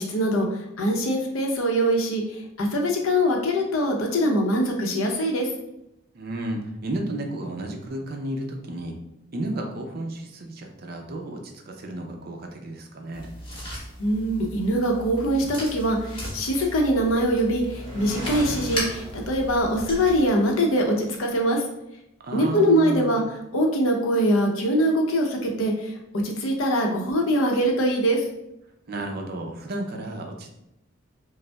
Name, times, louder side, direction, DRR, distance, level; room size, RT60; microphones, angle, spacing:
voice 1, 0.0-5.5 14.0-21.6 22.3-23.2 23.5-25.9 26.2-28.2, equal, 80° left, 1 dB, 0.7 m, -23 dB
voice 2, 6.1-8.9 9.3-13.3 22.2-23.2 28.9-30.5, right 1 dB, 45° right, 2 dB, 0.5 m, -32 dB
sound 1, 13.1-20.2, equal, 25° left, 0.9 m, -37 dB
sound 2, 16.4-21.4, left 1 dB, 20° right, 0.9 m, -39 dB
5.1 x 2.0 x 2.2 m, 0.86 s
head